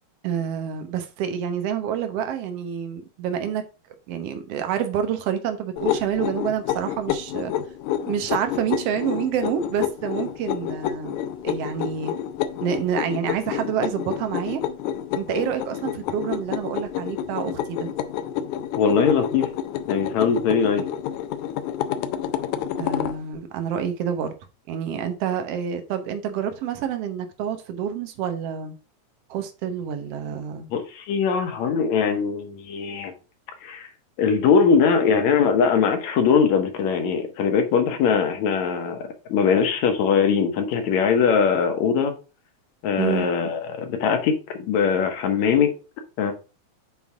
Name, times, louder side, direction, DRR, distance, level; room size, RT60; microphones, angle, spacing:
voice 1, 0.2-3.6 4.1-7.5 8.1-12.1 12.6-14.6 15.2-17.9 22.8-24.3 24.7-28.8 29.3-30.7 43.0-43.3, right 8 dB, 65° right, 1.8 m, -28 dB
sound 1, 5.8-23.2, left 10 dB, 90° left, 2.0 m, -29 dB
voice 2, 18.8-19.5 19.9-20.8 30.7-33.1 33.6-33.9 34.2-39.0 39.3-42.1 42.8-45.7 46.2-46.3, left 6 dB, 70° left, 2.3 m, -21 dB
7.2 x 3.9 x 4.6 m
omnidirectional pair, 3.4 m